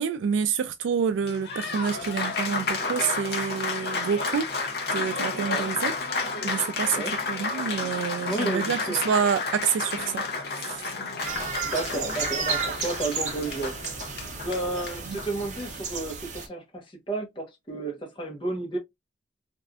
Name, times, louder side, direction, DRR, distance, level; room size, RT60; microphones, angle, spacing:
voice 1, 0.0-4.5 4.9-5.9 6.4-7.0 7.3-10.2 10.6-10.8 15.1-15.2, right 7 dB, 85° right, 0.3 m, -27 dB
Applause, 1.1-15.8, left 3 dB, 55° left, 0.6 m, -31 dB
voice 2, 8.3-9.0 11.6-13.8 14.4-18.8, right 2 dB, 25° left, 1.0 m, -32 dB
sound 1, 11.2-16.5, right 5 dB, 40° right, 0.7 m, -33 dB
3.2 x 2.5 x 2.3 m
head